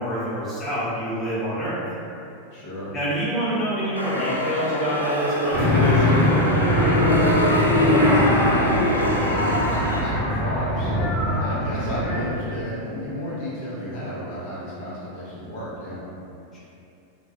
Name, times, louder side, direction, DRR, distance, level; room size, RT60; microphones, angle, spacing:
voice 1, 0.0-1.8 2.9-6.5 16.5-16.6, right 1 dB, 15° left, -10 dB, 0.9 m, -27 dB
voice 2, 2.5-3.0 7.7-11.1 11.4-16.0, equal, 55° left, -9 dB, 0.6 m, -32 dB
sound 1, 3.9-10.0, left 1 dB, 90° left, 0.3 m, -23 dB
sound 2, 5.5-12.2, left 1 dB, 25° right, 0.7 m, -22 dB
2.2 x 2.1 x 2.7 m, 2.7 s
figure-of-eight pair, 90°, 0 cm